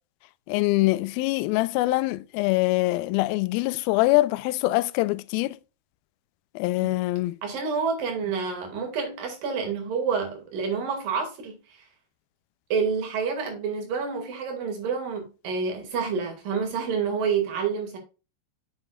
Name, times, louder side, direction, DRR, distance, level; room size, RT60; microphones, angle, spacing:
voice 1, 0.5-5.6 6.6-7.4, left 19 dB, 85° left, 2.4 m, -24 dB
voice 2, 7.4-11.9 12.7-18.0, right 5 dB, 70° right, 3.8 m, -28 dB
8.4 x 7.0 x 2.3 m
omnidirectional pair, 4.2 m